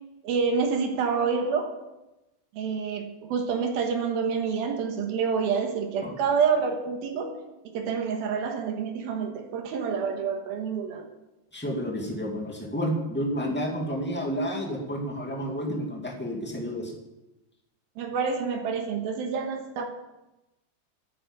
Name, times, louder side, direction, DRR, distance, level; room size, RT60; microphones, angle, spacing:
voice 1, 0.2-1.8 2.6-7.4 7.6-11.1 18.0-19.9, right 6 dB, 70° right, 4 dB, 3.1 m, -28 dB
voice 2, 11.5-16.9, equal, 5° left, 0 dB, 1.0 m, -30 dB
11.0 x 9.3 x 9.0 m, 0.99 s
omnidirectional pair, 4.6 m